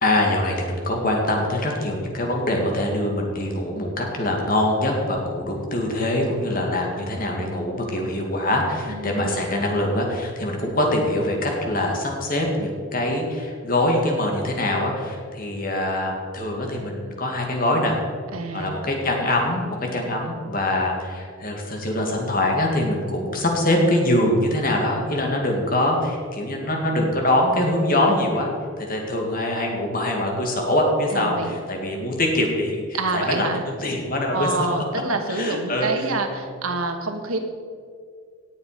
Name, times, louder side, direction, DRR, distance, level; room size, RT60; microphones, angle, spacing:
voice 1, 0.0-18.0 18.5-28.5 28.8-34.7 35.3-36.5, left 1 dB, 40° left, 0 dB, 2.3 m, -23 dB
voice 2, 8.9-9.4 18.3-18.8 31.1-31.5 32.9-33.7 34.3-37.4, right 3 dB, 90° right, 5 dB, 1.5 m, -27 dB
18.0 x 7.2 x 5.1 m, 2.1 s
head